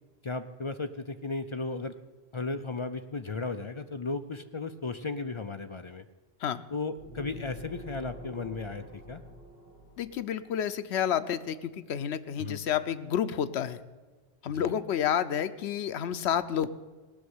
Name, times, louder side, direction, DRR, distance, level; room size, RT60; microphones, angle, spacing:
voice 1, 0.2-1.9 2.3-6.0 6.7-9.2 12.4-12.6 14.5-14.7, left 3 dB, 40° left, 9 dB, 0.4 m, -35 dB
sound 1, 7.0-10.7, left 1 dB, 65° right, 3.3 m, -47 dB
voice 2, 10.0-13.8 14.4-16.7, left 9 dB, 85° left, 11 dB, 0.9 m, -30 dB
17.5 x 6.3 x 9.5 m, 1.3 s
omnidirectional pair, 1.1 m